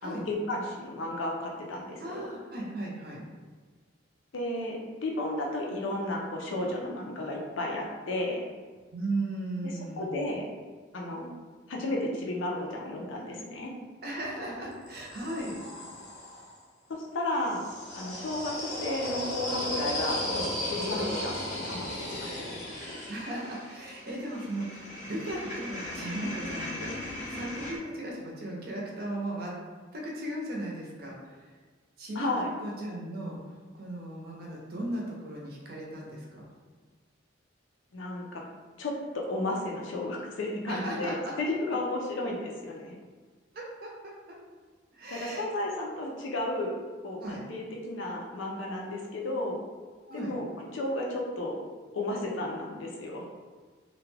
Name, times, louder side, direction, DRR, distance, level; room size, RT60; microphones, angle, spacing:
voice 1, 0.0-2.3 4.3-8.4 10.0-10.4 10.9-11.3 11.7-13.7 17.1-17.7 17.9-22.6 32.2-32.5 37.9-38.4 38.8-42.9 45.1-46.8 47.0-49.6 50.1-51.6 51.9-53.3, left 1 dB, 80° left, -1 dB, 0.5 m, -33 dB
voice 2, 2.0-3.2 8.9-10.1 14.0-15.6 23.1-29.5 29.9-31.5 32.0-33.4 33.7-36.5 40.6-41.3 43.5-44.1 44.9-45.5 47.2-47.4 50.1-50.4, right 1 dB, 50° right, -3 dB, 0.6 m, -37 dB
sound 1, 14.1-16.5 17.3-27.8, left 1 dB, 40° left, 0.6 m, -36 dB
2.3 x 2.1 x 3.2 m, 1.5 s
head